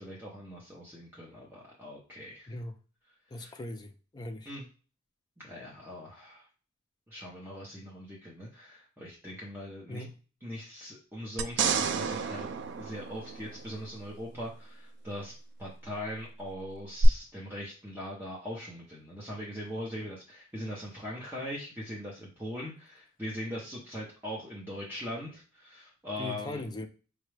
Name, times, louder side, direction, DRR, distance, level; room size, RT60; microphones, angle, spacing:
voice 1, 0.0-2.6 3.3-3.6 4.4-4.7 5.4-6.5 7.1-10.0 10.4-12.5 12.8-15.3 15.6-26.6, equal, 10° right, -5 dB, 0.7 m, -41 dB
voice 2, 3.3-4.5 9.9-10.2 26.2-26.9, left 2 dB, 20° left, 5 dB, 0.4 m, -39 dB
sound 1, 11.4-13.9 17.0-17.1, right 6 dB, 55° right, 0.3 m, -30 dB
4.9 x 2.2 x 3.2 m, 0.37 s
head